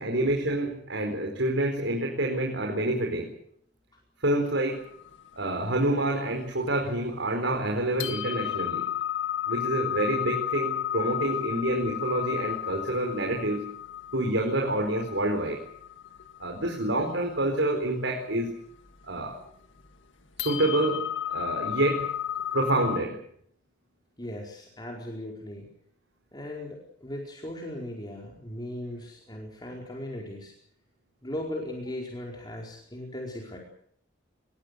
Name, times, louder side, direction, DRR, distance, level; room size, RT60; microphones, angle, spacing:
voice 1, 0.0-3.3 4.2-4.8 5.3-8.9 9.5-13.7 14.1-15.6 16.4-18.5 19.0-19.4 20.4-22.1 22.5-23.2, right 1 dB, 80° right, 2 dB, 4.6 m, -27 dB
sound 1, 4.7-7.0 7.5-7.6 8.0-23.0, left 11 dB, 80° left, 1.9 m, -34 dB
voice 2, 24.2-25.7 26.3-30.5 31.2-33.6, left 1 dB, 25° left, -1 dB, 4.7 m, -38 dB
25.5 x 21.5 x 6.8 m, 0.65 s
head